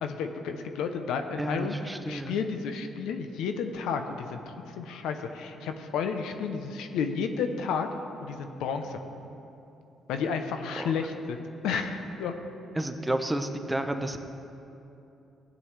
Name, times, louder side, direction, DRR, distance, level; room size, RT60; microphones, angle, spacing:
voice 1, 0.0-1.8 2.1-7.9 8.2-9.0 10.1-11.4 11.6-12.3, left 6 dB, 90° left, 7 dB, 0.7 m, -31 dB
voice 2, 1.4-2.3 10.8-10.9 12.8-14.2, right 1 dB, 10° right, 7 dB, 0.7 m, -31 dB
15.5 x 9.1 x 3.3 m, 2.8 s
cardioid pair, 90°, 0 cm